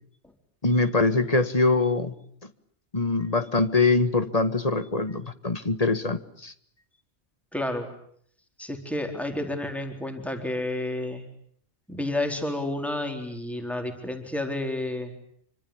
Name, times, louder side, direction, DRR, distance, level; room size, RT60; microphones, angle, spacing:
voice 1, 0.6-2.1 2.9-6.5, left 3 dB, 35° left, 11 dB, 1.7 m, -23 dB
voice 2, 7.5-7.9 8.6-11.2 11.9-15.1, left 1 dB, ahead, 5 dB, 4.1 m, -30 dB
27.0 x 25.0 x 8.8 m, 0.66 s
omnidirectional pair, 1.1 m